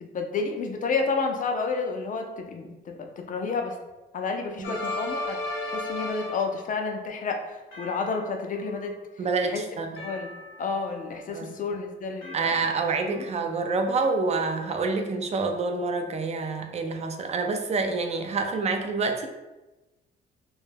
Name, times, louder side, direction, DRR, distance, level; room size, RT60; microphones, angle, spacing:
voice 1, 0.0-3.8 4.1-5.4 5.7-7.4 7.8-9.0 9.4-9.6 10.0-10.3 10.6-12.7 13.1-13.3, left 4 dB, 40° left, 3 dB, 0.4 m, -30 dB
sound 1, 4.6-6.6 7.7-8.6 10.0-10.9 12.2-13.1, left 2 dB, 75° left, 0.7 m, -35 dB
voice 2, 9.2-10.0 11.3-11.5 12.3-19.3, right 4 dB, 35° right, 5 dB, 0.4 m, -27 dB
2.2 x 2.0 x 3.2 m, 1.1 s
cardioid pair, 90°, 20 cm